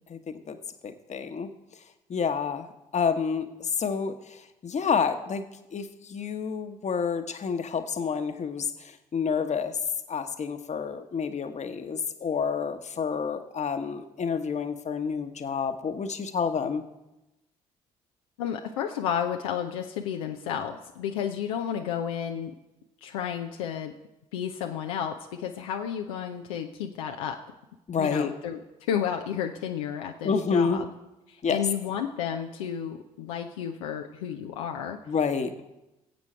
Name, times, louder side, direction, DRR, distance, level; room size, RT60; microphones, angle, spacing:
voice 1, 0.8-1.5 2.1-2.7 2.9-5.4 5.7-9.8 10.1-16.8 27.9-28.3 30.2-30.8 31.4-31.6 35.1-35.5, left 6 dB, 40° left, 8 dB, 1.2 m, -29 dB
voice 2, 18.4-22.5 23.0-23.9 24.3-27.4 27.9-28.6 28.9-30.9 31.3-35.0, left 8 dB, 75° left, 3 dB, 0.7 m, -32 dB
20.0 x 8.2 x 4.4 m, 0.96 s
figure-of-eight pair, 45°, 18 cm